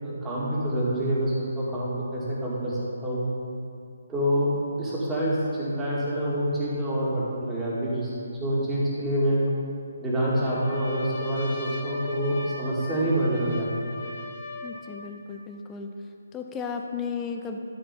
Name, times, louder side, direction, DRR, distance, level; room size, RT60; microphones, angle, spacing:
voice 1, 0.0-3.2 4.1-4.5 4.8-8.1 8.4-9.4 10.0-13.9, right 1 dB, 10° right, -7 dB, 2.3 m, -27 dB
Trumpet, 10.2-15.1, left 2 dB, 45° left, 1.3 m, -38 dB
voice 2, 14.6-15.9 16.3-17.6, left 6 dB, 15° left, 4 dB, 0.6 m, -34 dB
12.5 x 4.8 x 5.3 m, 2.5 s
figure-of-eight pair, 145°, 0 cm